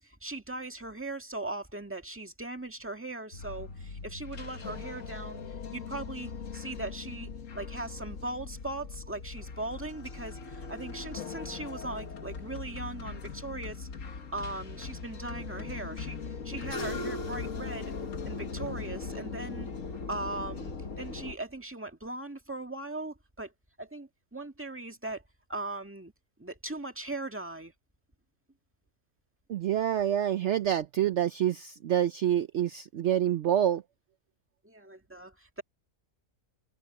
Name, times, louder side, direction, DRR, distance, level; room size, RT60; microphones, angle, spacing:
voice 1, 0.0-5.4 5.7-13.9 14.3-16.2 16.4-17.9 18.2-19.7 20.1-23.5 23.8-25.2 25.5-26.1 26.4-27.7 34.6-35.6, right 2 dB, 10° right, 1.8 m, -39 dB
sound 1, 3.3-21.3, left 4 dB, 65° left, 1.7 m, -39 dB
voice 2, 29.5-33.8, right 10 dB, 60° right, 0.9 m, -27 dB
omnidirectional pair, 1.5 m